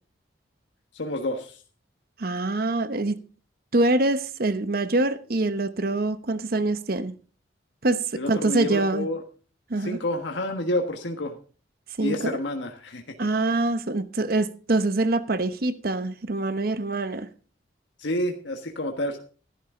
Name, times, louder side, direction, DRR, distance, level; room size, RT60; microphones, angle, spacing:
voice 1, 0.9-1.6 8.2-9.2 9.8-11.4 12.0-13.1 18.0-19.2, left 1 dB, 80° left, 1.4 m, -29 dB
voice 2, 2.2-3.2 3.7-7.1 7.8-9.1 9.7-10.0 12.0-12.4 13.2-17.3, right 2 dB, 55° right, 0.9 m, -25 dB
13.5 x 11.5 x 3.7 m
head